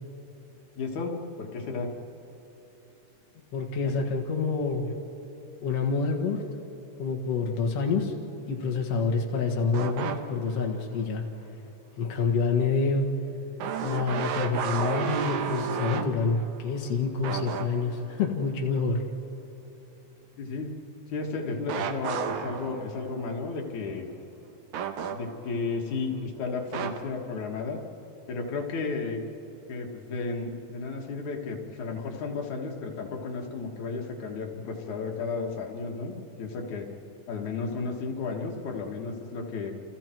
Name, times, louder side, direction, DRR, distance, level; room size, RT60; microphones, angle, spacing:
voice 1, 0.8-1.9 3.8-3.9 20.4-20.7 21.1-24.1 25.1-27.8 28.3-29.2 29.7-36.9 37.3-39.7, left 4 dB, 80° left, 1 dB, 3.2 m, -33 dB
voice 2, 3.5-5.0 5.6-6.4 7.0-8.1 8.5-11.2 12.0-13.2 13.8-19.0, left 4 dB, 60° left, 1 dB, 2.6 m, -27 dB
sound 1, 9.7-10.6 11.0-11.1 13.6-16.8 17.2-18.1 21.7-23.2 24.7-25.6 26.7-27.0, right 7 dB, 85° right, 2.5 m, -32 dB
29.5 x 29.0 x 4.6 m, 3.0 s
omnidirectional pair, 3.4 m